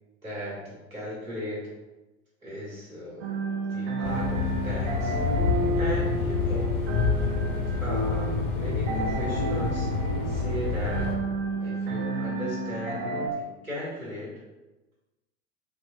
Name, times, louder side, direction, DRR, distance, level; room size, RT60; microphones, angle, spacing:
voice 1, 0.2-1.7 2.4-3.4 3.7-5.4 5.7-6.7 7.8-9.9 10.2-11.1 11.6-14.3, equal, 90° right, -7 dB, 1.4 m, -37 dB
sound 1, 3.2-13.3, right 2 dB, 45° right, 0.6 m, -31 dB
sound 2, 4.0-11.2, left 5 dB, 65° left, 0.7 m, -28 dB
4.0 x 2.1 x 2.8 m, 1.1 s
figure-of-eight pair, 75°, 41 cm